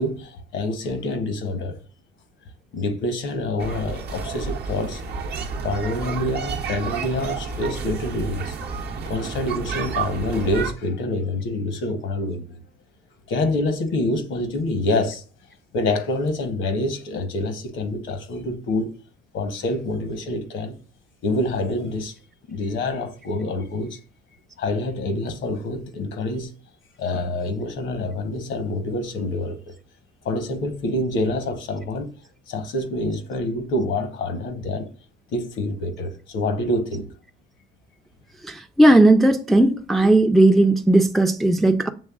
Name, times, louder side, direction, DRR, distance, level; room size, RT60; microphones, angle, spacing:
voice 1, 0.0-1.8 2.7-5.0 5.6-8.5 9.1-12.6 13.3-15.2 15.7-18.9 19.3-20.7 21.2-22.1 22.5-24.0 24.6-26.5 27.0-29.6 30.2-32.1 32.5-34.9 35.3-37.1, left 2 dB, 75° left, 0.9 m, -26 dB
sound 1, 3.6-10.7, right 5 dB, 55° right, 0.7 m, -30 dB
voice 2, 38.5-41.9, right 1 dB, ahead, 0.4 m, -16 dB
7.1 x 3.2 x 2.3 m
cardioid pair, 90°, 20 cm